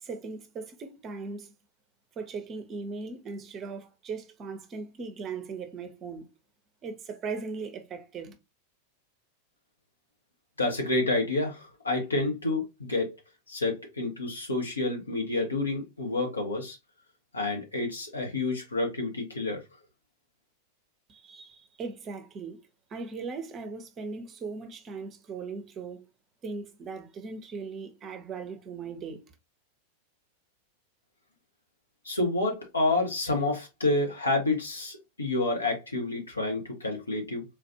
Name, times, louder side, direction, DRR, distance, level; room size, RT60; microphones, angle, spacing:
voice 1, 0.0-1.5 2.2-6.3 6.8-8.4 21.1-22.6 22.9-26.0 26.4-29.2, right 4 dB, 30° right, 0.7 m, -38 dB
voice 2, 10.6-13.1 13.5-16.8 17.3-19.6 32.0-37.4, left 2 dB, 75° left, 1.1 m, -29 dB
3.7 x 2.5 x 2.8 m
figure-of-eight pair, 90°, 0 cm